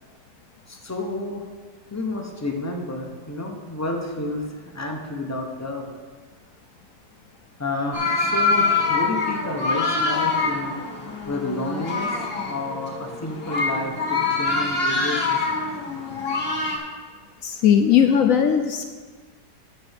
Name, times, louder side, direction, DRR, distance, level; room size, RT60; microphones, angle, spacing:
voice 1, 0.7-1.5 1.9-4.4 4.7-5.9 7.6-10.7 11.3-15.6, left 2 dB, 20° left, 1 dB, 0.4 m, -30 dB
sound 1, 7.9-16.8, left 3 dB, 35° left, 1.4 m, -25 dB
voice 2, 17.4-18.8, left 8 dB, 75° left, 6 dB, 0.7 m, -18 dB
12.0 x 8.6 x 3.5 m, 1.5 s
omnidirectional pair, 2.0 m